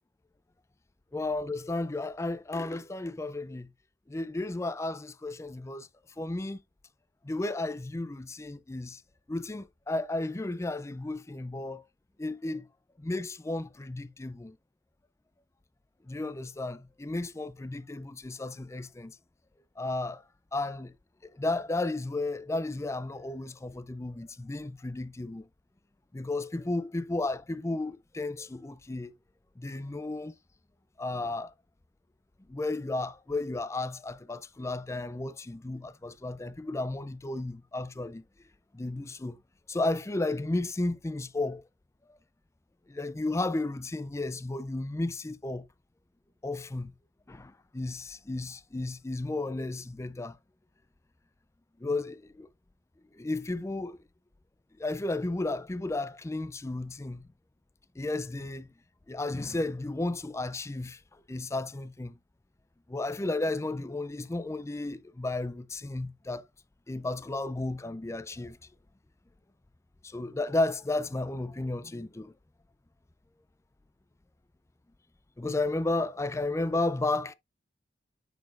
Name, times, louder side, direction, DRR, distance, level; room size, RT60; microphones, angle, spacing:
voice 1, 1.1-3.7 4.1-5.9 6.2-6.6 7.2-9.0 9.3-11.8 12.2-12.7 13.0-14.6 16.1-19.2 19.8-20.2 20.5-20.9 21.3-25.5 26.1-29.1 29.6-30.3 31.0-31.5 32.5-38.2 38.7-39.4 39.7-41.6 42.1-42.2 42.9-45.7 46.4-46.9 47.3-50.4 51.8-52.5 53.1-54.0 54.8-57.3 58.0-58.7 59.1-61.0 61.3-62.1 62.9-66.4 66.9-68.6 70.0-72.3 75.4-77.3, left 2 dB, 15° left, 0.4 m, -33 dB
9.0 x 5.7 x 2.5 m
head